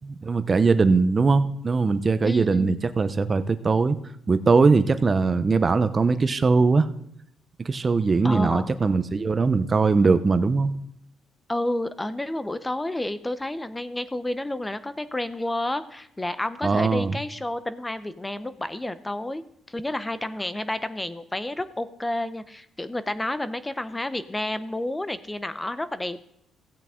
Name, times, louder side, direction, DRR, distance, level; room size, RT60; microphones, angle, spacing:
voice 1, 0.0-4.0 4.3-6.9 7.6-10.7 16.6-17.2, right 4 dB, 35° right, 12 dB, 0.7 m, -21 dB
voice 2, 2.2-2.8 8.2-8.7 11.5-19.4 19.7-26.2, left 1 dB, 15° left, 13 dB, 0.7 m, -30 dB
16.0 x 8.2 x 3.7 m, 0.74 s
cardioid pair, 90°, 0 cm